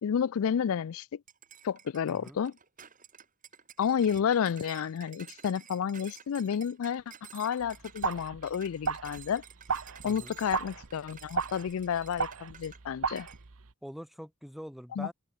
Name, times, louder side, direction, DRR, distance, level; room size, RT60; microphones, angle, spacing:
voice 1, 0.0-1.2 1.6-2.5 3.8-7.0 7.3-9.4 10.0-13.3 14.9-15.1, left 7 dB, 70° left, 0.4 m, -30 dB
sound 1, 1.3-12.8 13.2-13.4, right 9 dB, 35° right, 4.2 m, -52 dB
voice 2, 2.1-2.4 10.0-10.4 13.8-15.1, equal, ahead, 0.5 m, -44 dB
sound 2, 7.6-13.7, right 5 dB, 70° right, 1.1 m, -35 dB
head